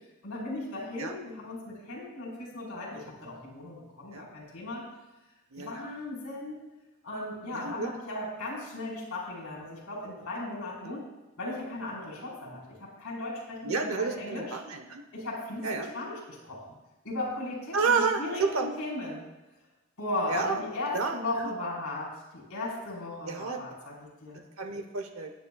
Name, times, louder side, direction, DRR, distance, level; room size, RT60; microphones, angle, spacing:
voice 1, 0.2-4.8 5.6-6.6 7.0-11.0 11.4-14.4 15.1-16.8 17.0-19.2 20.0-23.9 24.2-24.4, left 2 dB, 80° left, -4 dB, 4.5 m, -36 dB
voice 2, 5.5-5.9 7.5-7.9 10.8-10.9 13.6-15.0 15.6-15.9 17.7-18.7 20.3-20.6 20.9-21.5 23.2-23.6 24.6-25.3, right 4 dB, 70° right, 5 dB, 1.0 m, -30 dB
18.0 x 10.0 x 2.4 m, 1.0 s
head